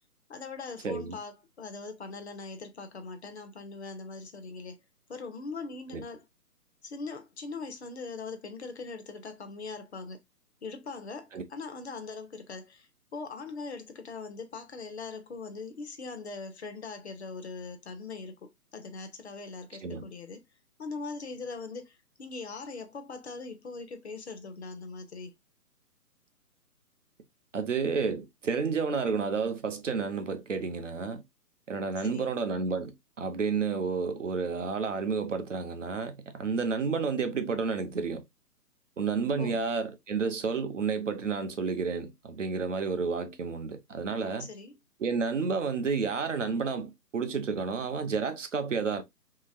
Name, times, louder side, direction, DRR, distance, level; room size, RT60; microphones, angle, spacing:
voice 1, 0.3-4.8 5.1-6.3 6.8-10.2 10.6-20.4 20.8-25.3 32.0-32.3 39.4-39.6 44.4-44.8, left 4 dB, 45° left, 0.6 m, -41 dB
voice 2, 0.8-1.2 5.9-6.0 11.3-11.4 19.8-20.0 27.5-31.2 31.7-38.2 39.0-44.5 45.0-49.0, right 5 dB, 50° right, 0.6 m, -31 dB
3.1 x 2.8 x 2.4 m
figure-of-eight pair, 140°, 47 cm